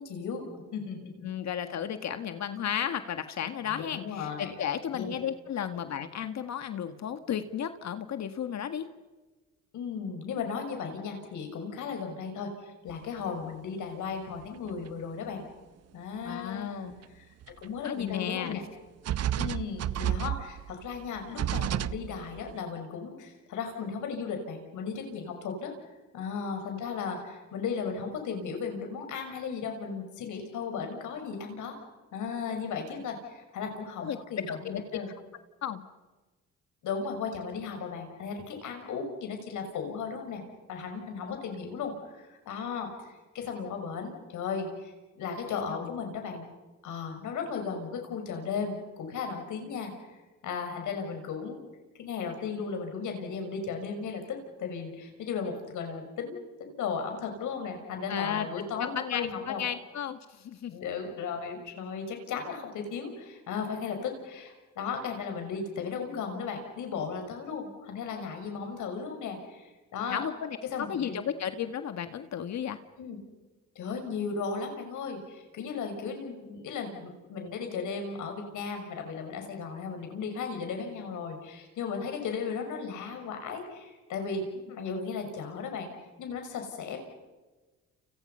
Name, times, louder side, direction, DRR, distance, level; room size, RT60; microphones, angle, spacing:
voice 1, 0.0-1.3 3.6-4.5 4.9-5.2 9.7-15.4 15.9-17.3 17.6-18.6 19.4-25.7 26.1-31.8 32.1-35.1 36.8-40.4 40.7-43.1 43.3-46.4 46.8-51.6 52.0-59.7 60.7-70.2 70.6-71.2 73.0-73.2 73.7-85.9 86.2-87.0, left 5 dB, 80° left, 5 dB, 6.2 m, -36 dB
voice 2, 1.2-8.9 16.2-16.9 17.8-18.6 34.0-34.2 34.5-35.0 35.6-35.9 41.3-41.4 45.7-45.9 58.1-58.5 58.8-60.7 70.1-72.8, left 9 dB, 65° left, 9 dB, 1.8 m, -34 dB
sound 1, 12.9-13.0 14.4-14.5 14.7-14.9 17.0-17.1 17.4-18.2 18.5-18.6 19.0-22.5, right 11 dB, 55° right, 0.7 m, -31 dB
30.0 x 29.5 x 5.7 m, 1.2 s
cardioid pair, 90°, 30 cm